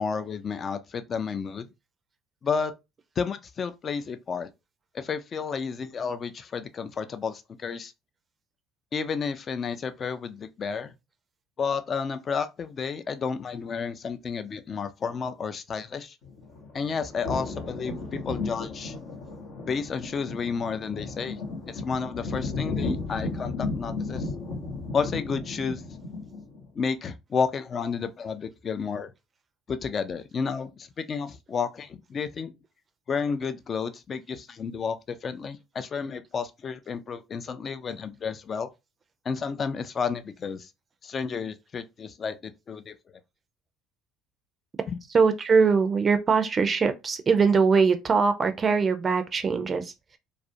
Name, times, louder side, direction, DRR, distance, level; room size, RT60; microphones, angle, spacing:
voice 1, 0.0-1.7 2.4-2.8 3.2-4.5 4.9-7.9 8.9-10.9 11.6-16.2 16.7-19.0 19.7-21.4 21.7-24.3 24.9-25.8 26.8-29.1 29.7-32.5 33.1-38.7 39.3-40.7 41.0-43.0 44.9-45.0, left 5 dB, 40° left, 0.3 m, -31 dB
sound 1, 16.2-26.6, left 3 dB, 70° left, 0.7 m, -34 dB
voice 2, 45.1-50.2, right 5 dB, 35° right, 0.4 m, -22 dB
2.3 x 2.1 x 2.6 m
hypercardioid pair, 65°, 0 cm